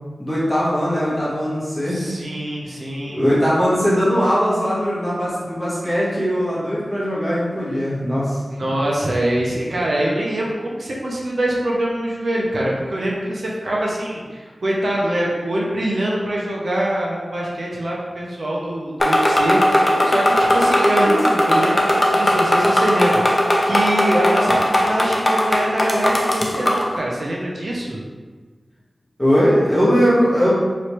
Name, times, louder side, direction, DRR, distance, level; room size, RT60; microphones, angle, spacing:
voice 1, 0.2-2.0 3.1-8.4 29.2-30.5, equal, 5° left, -9 dB, 1.4 m, -19 dB
voice 2, 1.9-3.2 8.6-28.0, right 1 dB, 70° right, -4 dB, 0.6 m, -24 dB
sound 1, 19.0-26.9, left 1 dB, 30° left, 0.5 m, -18 dB
3.1 x 3.1 x 3.0 m, 1.4 s
wide cardioid pair, 70°, 0 cm